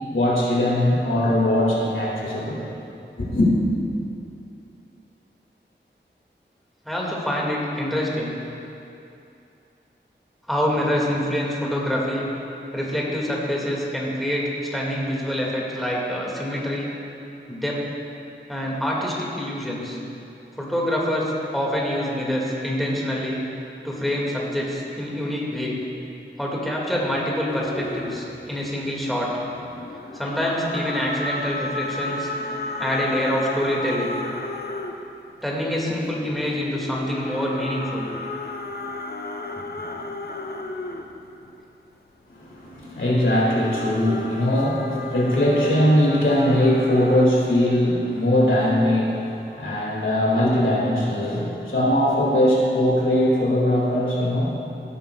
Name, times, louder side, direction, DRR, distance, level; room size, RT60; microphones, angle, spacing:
voice 1, 0.0-2.6 3.2-3.5 42.3-54.6, left 1 dB, 85° left, -5 dB, 2.2 m, -20 dB
voice 2, 6.8-8.4 10.5-12.3 12.7-16.9 17.5-17.8 18.5-20.0 20.6-23.4 23.8-25.8 26.4-29.3 30.1-32.3 32.8-34.2 35.4-38.1, equal, ahead, -4 dB, 2.1 m, -26 dB
sound 1, 27.5-29.3 29.5-35.2 35.9-41.6 42.6-47.3, left 2 dB, 55° left, 0.7 m, -33 dB
16.0 x 8.8 x 2.4 m, 2.7 s
wide cardioid pair, 55°, 19 cm